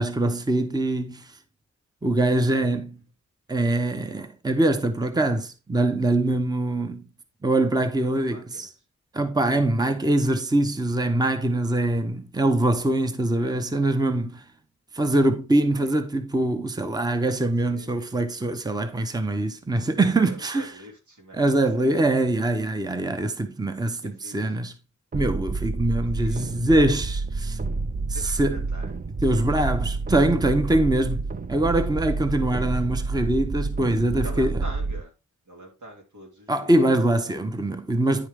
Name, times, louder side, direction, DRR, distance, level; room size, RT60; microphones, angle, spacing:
voice 1, 0.0-1.3 2.0-3.0 3.5-7.0 7.4-8.7 9.1-14.4 14.9-20.7 21.3-24.7 25.1-27.6 28.2-28.6 29.2-34.6 36.5-38.3, right 1 dB, 15° right, 0.9 m, -23 dB
voice 2, 7.7-8.7 13.3-13.6 15.7-16.0 17.7-18.7 20.2-22.2 24.0-24.6 26.0-26.9 28.1-28.9 34.2-35.1 35.5-36.8, equal, 80° right, 3.0 m, -45 dB
sound 1, 25.1-35.0, right 3 dB, 30° right, 0.5 m, -29 dB
10.0 x 4.8 x 3.6 m
cardioid pair, 70°, 30 cm